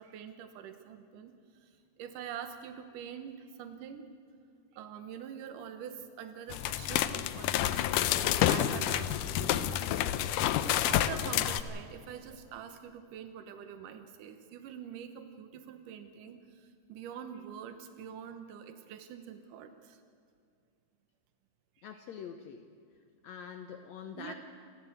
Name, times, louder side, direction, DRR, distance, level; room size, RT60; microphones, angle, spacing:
voice 1, 0.0-1.3 1.6-4.1 4.7-9.9 10.9-20.0 24.2-24.3, right 8 dB, 90° right, 8 dB, 2.6 m, -45 dB
sound 1, 6.5-11.6, left 12 dB, 85° left, 2.3 m, -29 dB
voice 2, 21.8-22.6 23.2-24.3, left 7 dB, 70° left, 6 dB, 1.9 m, -44 dB
28.0 x 13.0 x 8.0 m, 2.3 s
omnidirectional pair, 3.6 m